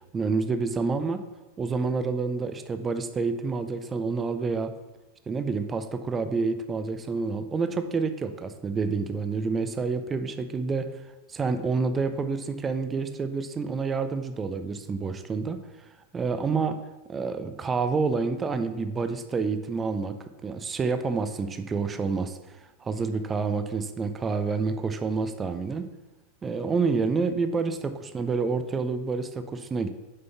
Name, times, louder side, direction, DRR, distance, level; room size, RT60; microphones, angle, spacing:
voice 1, 0.1-1.2 1.6-4.7 5.3-10.9 11.3-15.6 16.1-16.8 17.1-22.4 22.8-25.9 26.4-29.9, right 4 dB, 20° right, 10 dB, 0.5 m, -28 dB
6.6 x 5.3 x 5.7 m, 1.1 s
figure-of-eight pair, 90°, 0 cm